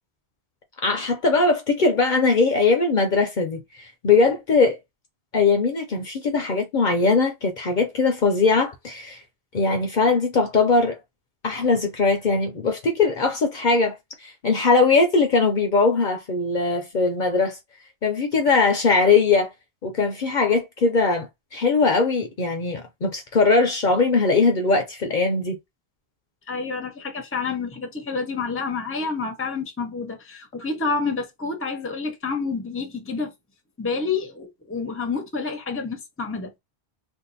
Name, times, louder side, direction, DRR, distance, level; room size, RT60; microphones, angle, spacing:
voice 1, 0.8-4.8 5.3-9.2 9.5-11.0 11.4-14.0 14.2-17.6 18.0-19.5 19.8-25.6, left 4 dB, 55° left, 0.7 m, -20 dB
voice 2, 26.5-33.3 33.8-36.5, left 4 dB, 15° left, 0.7 m, -28 dB
2.6 x 2.5 x 3.9 m
omnidirectional pair, 1.1 m